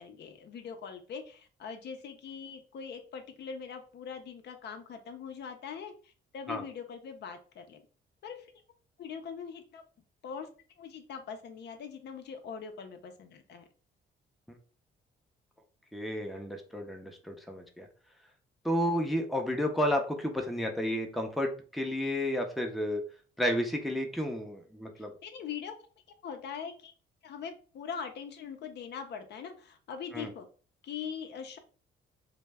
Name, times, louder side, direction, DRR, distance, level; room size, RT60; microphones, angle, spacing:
voice 1, 0.0-7.8 8.2-8.5 9.0-9.8 10.2-10.5 10.8-13.6 25.0-25.7 26.2-26.9 27.2-30.5 30.8-31.6, left 6 dB, 60° left, 7 dB, 0.5 m, -42 dB
voice 2, 15.9-17.9 18.6-23.0 23.4-25.1 30.1-30.3, left 1 dB, ahead, 3 dB, 0.5 m, -31 dB
2.2 x 2.0 x 3.3 m, 0.39 s
cardioid pair, 90°, 20 cm